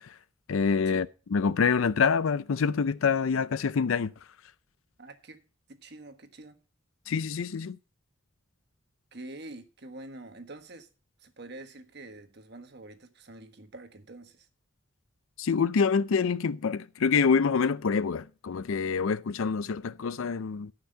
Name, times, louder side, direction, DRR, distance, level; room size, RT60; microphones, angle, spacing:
voice 1, 0.5-4.1 7.1-7.8 15.4-20.7, left 5 dB, 75° left, 0.5 m, -26 dB
voice 2, 5.0-5.4 5.7-6.6 9.1-10.9 11.2-14.5, right 2 dB, 50° right, 1.4 m, -46 dB
14.0 x 5.9 x 5.5 m
head